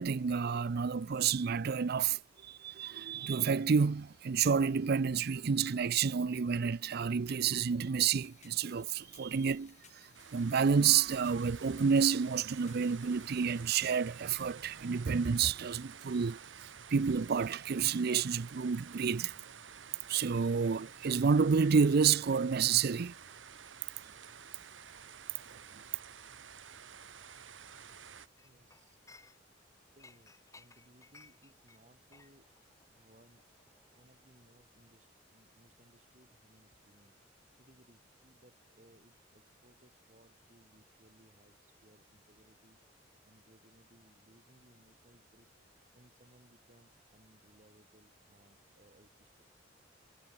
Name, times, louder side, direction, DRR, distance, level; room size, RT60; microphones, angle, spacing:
voice 1, 0.0-19.3 20.1-23.1, right 6 dB, 55° right, 0.5 m, -30 dB
sound 1, 8.1-13.7, left 9 dB, 40° left, 2.7 m, -63 dB
sound 2, 10.1-28.3, right 8 dB, 80° right, 1.1 m, -51 dB
Chink clink, 28.4-29.7 30.0-34.6 34.9-35.1, left 3 dB, 15° left, 2.4 m, -61 dB
voice 2, 28.4-29.0 29.9-32.5 32.9-33.4 33.9-37.1 37.6-42.8 43.2-45.5 45.9-49.4, right 1 dB, 40° right, 5.0 m, -64 dB
head